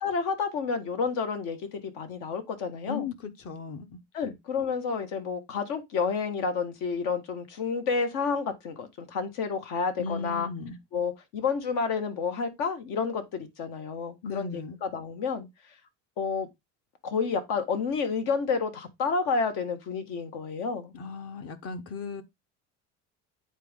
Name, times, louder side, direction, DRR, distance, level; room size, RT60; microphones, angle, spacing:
voice 1, 0.0-3.1 4.1-10.5 10.9-15.5 16.2-16.5 17.0-20.9, left 5 dB, 70° left, 1.6 m, -30 dB
voice 2, 2.9-4.0 10.0-10.8 14.2-14.8 20.9-22.2, left 5 dB, 45° left, 1.2 m, -36 dB
8.3 x 4.2 x 3.6 m
supercardioid pair, 115°, 33 cm